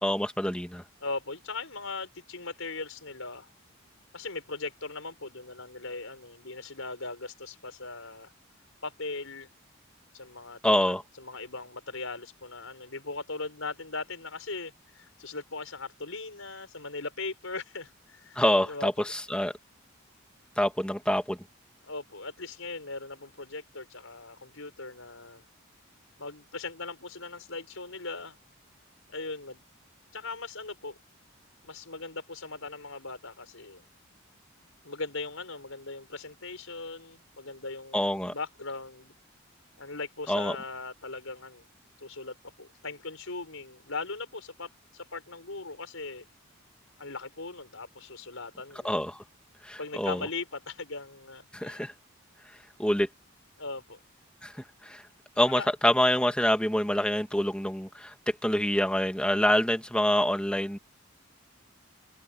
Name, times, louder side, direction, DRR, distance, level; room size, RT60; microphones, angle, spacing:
voice 1, 0.0-0.8 10.6-11.0 18.4-19.5 20.6-21.4 37.9-38.3 40.3-40.6 48.8-49.2 49.6-50.2 51.5-51.9 52.8-53.1 54.4-55.0 55.4-58.1 58.4-60.8, left 1 dB, 5° left, 2.1 m, -26 dB
voice 2, 1.0-3.5 4.1-8.3 8.8-9.5 10.1-10.6 10.9-19.2 21.8-25.4 26.2-28.4 29.1-29.6 30.1-31.0 31.6-33.8 34.8-39.1 39.8-41.6 42.0-46.3 47.0-48.9 49.8-51.8 53.6-54.0 55.5-55.7, left 3 dB, 80° left, 5.2 m, -39 dB
open air
head